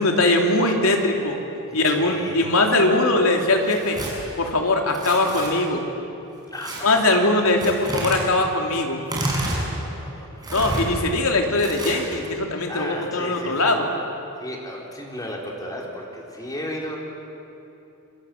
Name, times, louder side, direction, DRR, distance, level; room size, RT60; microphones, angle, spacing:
voice 1, 0.0-1.4 1.7-4.0 4.4-5.9 6.8-9.0 10.5-13.9, left 2 dB, 75° left, 2 dB, 3.3 m, -21 dB
voice 2, 1.7-2.5 6.5-7.2 9.2-10.9 12.5-14.0 14.4-17.0, left 1 dB, 15° left, -1 dB, 4.4 m, -35 dB
Tearing, 3.6-4.1 4.9-5.5 6.6-6.8 7.6-8.2 9.0-9.6 10.4-10.8 11.6-12.2, right 1 dB, 20° right, 6.5 m, -29 dB
28.0 x 25.0 x 7.9 m, 2.8 s
head